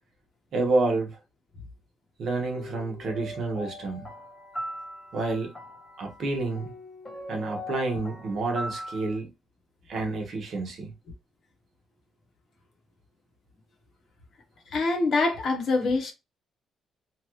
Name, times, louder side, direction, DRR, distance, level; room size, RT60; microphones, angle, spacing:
voice 1, 0.5-1.2 2.2-4.1 5.1-5.5 6.0-6.7 7.3-9.3 9.9-10.9, right 3 dB, 50° right, 1.0 m, -29 dB
sound 1, 2.5-9.2, equal, 15° left, 0.8 m, -40 dB
voice 2, 14.7-16.1, left 3 dB, 45° left, 0.9 m, -25 dB
3.1 x 2.4 x 3.0 m
cardioid pair, 170°, 0 cm